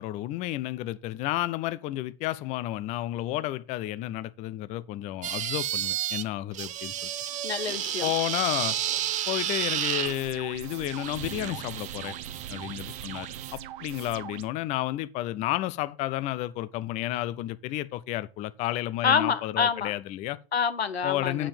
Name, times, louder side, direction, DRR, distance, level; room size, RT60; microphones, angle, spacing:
voice 1, 0.0-7.1 8.0-8.8 9.3-12.2 12.5-20.4 21.0-21.5, left 15 dB, 25° left, 0.4 m, -31 dB
sound 1, 5.2-6.2 6.5-10.2 10.9-13.5, right 11 dB, 25° right, 0.6 m, -32 dB
voice 2, 7.4-8.1 19.0-19.9 20.5-21.5, left 6 dB, 85° left, 1.0 m, -26 dB
sound 2, 10.1-14.4, right 10 dB, 55° right, 0.9 m, -41 dB
8.6 x 4.9 x 7.0 m
figure-of-eight pair, 100°, 31 cm